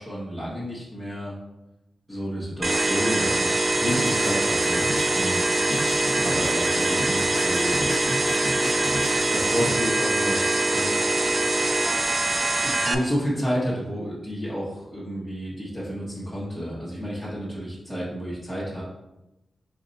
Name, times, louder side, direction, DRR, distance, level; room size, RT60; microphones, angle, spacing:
voice 1, 0.0-1.4 2.1-4.8 5.1-5.6 6.2-7.8 9.3-10.9 12.5-18.8, equal, 5° right, -9 dB, 1.1 m, -31 dB
sound 1, 2.6-12.9, right 2 dB, 35° right, 0.4 m, -23 dB
sound 2, 3.9-9.7, left 1 dB, 55° left, 0.6 m, -34 dB
4.2 x 2.5 x 4.0 m, 0.95 s
wide cardioid pair, 85°, 0 cm